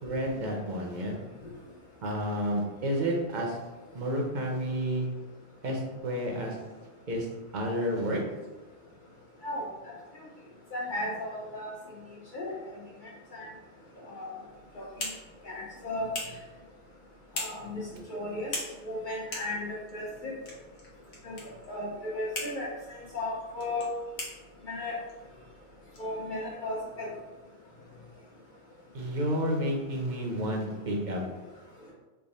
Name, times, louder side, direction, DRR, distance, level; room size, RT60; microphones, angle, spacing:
voice 1, 0.0-1.1 2.0-3.6 3.9-5.1 5.6-6.6 7.1-7.3 7.5-8.2 28.9-31.2, equal, 50° right, 0 dB, 0.7 m, -30 dB
voice 2, 10.7-11.7 12.3-12.5 13.3-13.5 14.1-14.3 14.8-14.9 15.4-16.1 17.4-17.8 18.1-18.5 18.9-20.3 21.2-21.3 21.7-22.7 23.1-23.9 24.7-25.0 26.0-27.1, left 1 dB, 55° left, -3 dB, 0.7 m, -35 dB
sound 1, 14.4-26.8, left 2 dB, 80° left, 1.2 m, -43 dB
3.4 x 2.1 x 4.0 m, 1.2 s
omnidirectional pair, 1.1 m